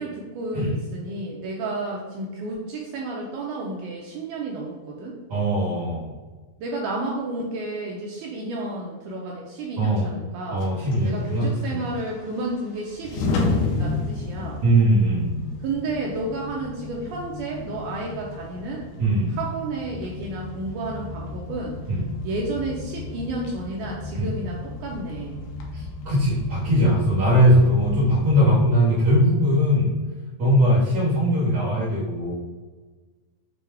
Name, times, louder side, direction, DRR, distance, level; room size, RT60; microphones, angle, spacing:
voice 1, 0.0-5.2 6.6-10.7 11.0-14.6 15.6-18.9 19.3-21.8 22.2-25.4, right 2 dB, 90° right, -2 dB, 1.8 m, -31 dB
voice 2, 5.3-6.1 9.8-10.1 10.5-11.8 14.6-15.5 19.0-19.4 21.9-22.1 24.2-24.3 25.7-29.9 30.4-32.3, equal, 60° right, -10 dB, 1.8 m, -20 dB
sound 1, 10.6-28.5, left 3 dB, 85° left, 2.5 m, -33 dB
6.7 x 2.2 x 3.4 m, 1.3 s
omnidirectional pair, 4.1 m